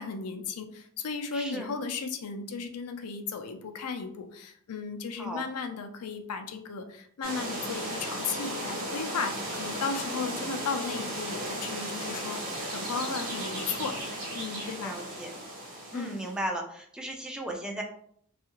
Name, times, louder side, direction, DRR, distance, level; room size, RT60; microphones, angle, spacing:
voice 1, 0.0-14.9 15.9-16.2, left 5 dB, 85° left, 7 dB, 0.4 m, -35 dB
voice 2, 1.3-1.7 5.2-5.4 14.8-15.3 15.9-17.8, right 1 dB, 5° right, 1 dB, 0.3 m, -36 dB
sound 1, 7.2-16.4, right 1 dB, 40° right, 0.7 m, -35 dB
2.7 x 2.4 x 2.8 m, 0.64 s
head